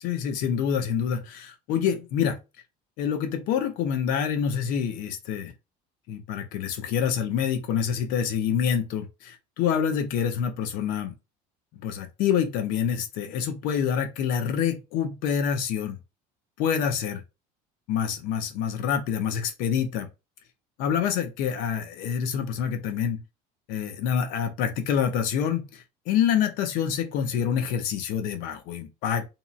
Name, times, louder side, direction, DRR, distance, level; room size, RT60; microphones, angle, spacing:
voice 1, 0.0-2.4 3.0-5.5 6.1-11.1 11.7-16.0 16.6-17.2 17.9-20.1 20.8-23.2 23.7-29.2, left 8 dB, 60° left, 0.7 m, -27 dB
2.7 x 2.7 x 2.3 m
cardioid pair, 170°, 16 cm